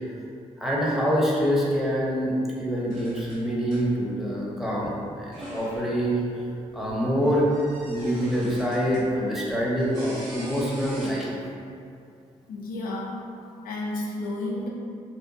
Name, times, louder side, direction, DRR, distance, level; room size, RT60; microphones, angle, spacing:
voice 1, 0.6-2.3 2.6-6.3 6.7-7.5 7.9-11.3, equal, ahead, -5 dB, 0.7 m, -25 dB
sound 1, 2.9-4.3 4.6-5.9 6.7-9.2 9.5-11.1, equal, 85° right, 1.2 m, -42 dB
voice 2, 12.5-13.2 13.6-14.7, left 2 dB, 85° left, -2 dB, 0.4 m, -31 dB
2.8 x 2.1 x 2.6 m, 2.4 s
cardioid pair, 60°, 14 cm